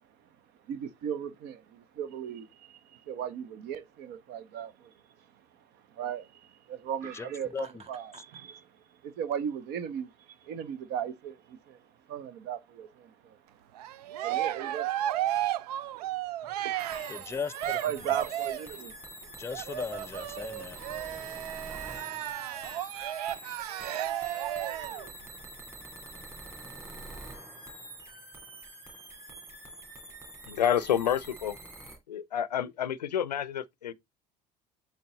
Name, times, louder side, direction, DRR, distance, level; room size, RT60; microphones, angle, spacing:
voice 1, 0.7-4.9 5.9-8.7 9.0-11.8 12.1-13.4 14.2-14.9 16.6-16.7 17.8-18.9, right 9 dB, 55° right, 0.8 m, -37 dB
voice 2, 7.1-7.7 17.1-17.8 19.4-20.8, left 6 dB, 15° left, 0.4 m, -37 dB
Laughter, 7.5-8.4, right 5 dB, 30° right, 1.0 m, -52 dB
Cheering, 13.7-18.8 19.5-25.1, right 13 dB, 75° right, 0.4 m, -33 dB
sound 1, 16.8-32.0, right 1 dB, 15° right, 3.4 m, -46 dB
voice 3, 30.5-31.6 32.1-33.9, left 9 dB, 85° left, 0.5 m, -29 dB
7.9 x 3.5 x 3.8 m
hypercardioid pair, 65°, 20 cm